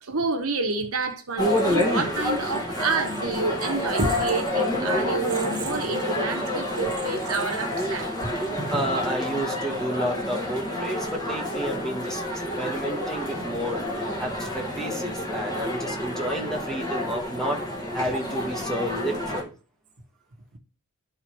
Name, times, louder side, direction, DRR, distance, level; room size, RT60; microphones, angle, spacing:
voice 1, 0.0-8.1, right 4 dB, 75° right, 1.2 m, -28 dB
sound 1, 1.4-19.4, left 1 dB, 20° left, 1.7 m, -28 dB
voice 2, 8.7-17.6 17.9-19.5, equal, ahead, 1.4 m, -31 dB
12.0 x 4.3 x 3.1 m
head